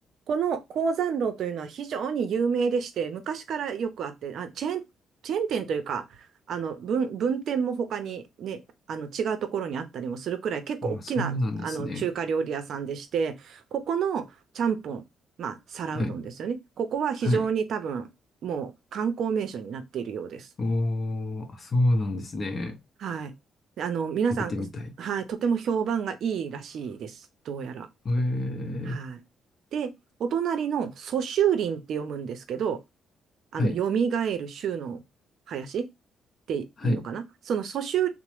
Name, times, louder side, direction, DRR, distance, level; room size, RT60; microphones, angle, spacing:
voice 1, 0.3-4.8 5.2-6.0 6.5-8.6 8.9-11.3 11.6-14.2 14.5-15.0 15.4-18.1 18.4-20.5 23.0-23.3 23.8-24.7 25.0-27.2 27.5-27.9 28.9-29.2 29.7-29.9 30.2-32.8 33.5-35.0 35.5-35.9 36.5-38.1, right 7 dB, 70° right, 0.5 m, -29 dB
voice 2, 10.8-12.1 15.9-16.2 17.2-17.5 20.6-22.8 24.5-24.9 28.0-29.0 33.5-33.8 36.8-37.1, left 1 dB, 40° left, 0.6 m, -28 dB
2.9 x 2.0 x 3.0 m
cardioid pair, 90°, 0 cm